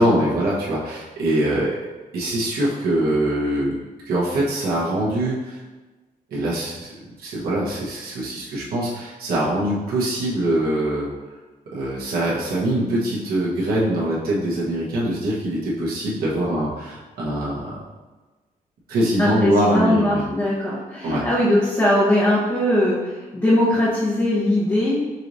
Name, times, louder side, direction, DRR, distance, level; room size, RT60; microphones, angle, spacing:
voice 1, 0.0-1.8 2.1-3.8 4.0-5.6 6.3-6.9 7.2-11.1 11.7-17.8 18.9-20.2 21.0-21.2, right 1 dB, 80° right, -6 dB, 1.2 m, -23 dB
voice 2, 19.2-25.0, left 1 dB, 15° left, -8 dB, 1.0 m, -20 dB
5.4 x 3.1 x 2.7 m, 1.2 s
cardioid pair, 110°, 15 cm